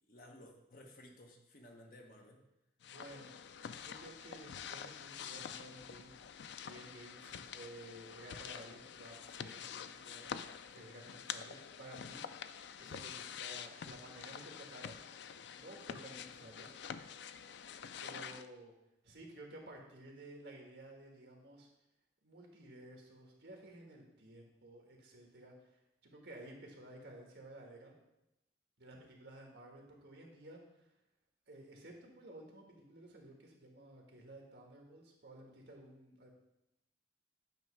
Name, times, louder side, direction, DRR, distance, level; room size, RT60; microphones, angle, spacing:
voice 1, 0.1-2.5, left 1 dB, 45° left, 2 dB, 1.0 m, -56 dB
sound 1, 2.8-18.5, left 7 dB, 65° left, 0.3 m, -47 dB
voice 2, 2.9-6.2 6.6-10.3 10.6-12.5 12.8-15.0 15.5-16.7 18.0-18.7 19.0-21.7 22.2-25.5 26.1-27.9 28.8-30.6 31.5-36.3, right 1 dB, 65° right, 0 dB, 1.6 m, -54 dB
9.1 x 3.1 x 6.2 m, 0.89 s
head